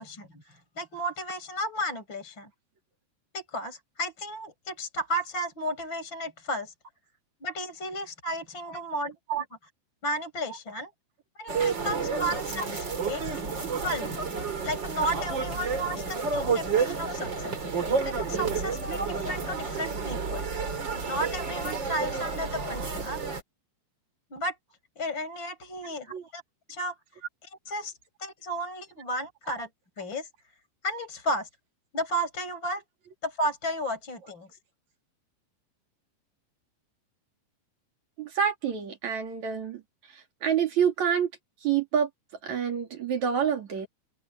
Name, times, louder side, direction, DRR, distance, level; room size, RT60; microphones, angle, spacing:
voice 1, 0.0-2.5 3.3-6.7 7.4-9.1 10.0-10.9 11.4-13.2 13.7-14.1 14.6-20.5 21.1-23.2 24.3-24.5 25.0-26.4 26.7-27.0 27.7-29.7 30.0-30.3 30.8-31.5 31.9-32.8 33.2-34.5, equal, 25° left, 6.3 m, -33 dB
sound 1, 11.5-23.4, right 5 dB, 25° right, 3.5 m, -30 dB
voice 2, 25.8-26.3 29.4-29.6 38.2-39.8 40.1-41.3 41.6-42.1 42.4-43.9, right 8 dB, 45° right, 3.8 m, -28 dB
omnidirectional pair, 5.2 m